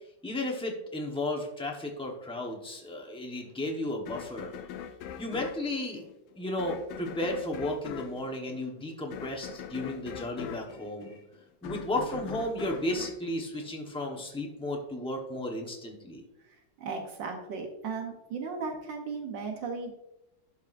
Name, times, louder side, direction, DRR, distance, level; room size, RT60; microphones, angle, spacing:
voice 1, 0.2-4.5 5.2-6.0 6.4-11.2 11.6-16.2, left 1 dB, 5° left, 0 dB, 0.4 m, -34 dB
sound 1, 4.1-14.3, left 8 dB, 85° left, 1.4 m, -42 dB
voice 2, 16.8-19.9, right 4 dB, 75° right, 3 dB, 1.5 m, -36 dB
12.0 x 5.7 x 2.5 m, 0.88 s
omnidirectional pair, 2.1 m